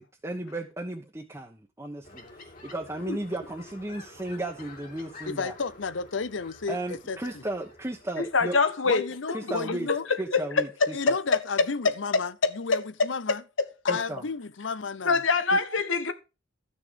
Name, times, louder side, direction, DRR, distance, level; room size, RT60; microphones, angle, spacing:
voice 1, 0.0-5.5 6.7-8.5 9.3-9.9 10.2-11.2 13.9-14.2 15.5-15.6, right 1 dB, 15° right, 1.2 m, -35 dB
sound 1, 2.0-8.6, left 3 dB, 45° left, 2.6 m, -49 dB
voice 2, 5.2-7.4 8.9-10.1 10.9-13.4 13.8-15.2, left 5 dB, 70° left, 0.7 m, -33 dB
voice 3, 8.3-9.1 10.1-10.2 11.1-11.4 11.8-11.9 12.4-12.8 13.6-14.0 15.0-16.1, left 4 dB, 85° left, 1.2 m, -24 dB
13.0 x 6.3 x 5.2 m
head